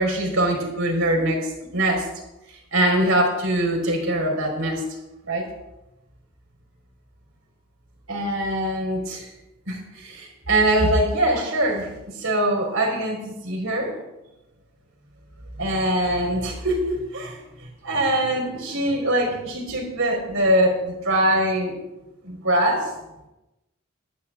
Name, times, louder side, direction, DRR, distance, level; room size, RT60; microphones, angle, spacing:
voice 1, 0.0-2.0 2.7-4.8 5.3-5.4 8.1-9.3 9.7-11.9 12.2-13.9 15.6-17.3 17.8-21.7 22.2-22.8, right 1 dB, 75° right, 1 dB, 4.4 m, -22 dB
21.0 x 13.0 x 2.5 m, 0.96 s
head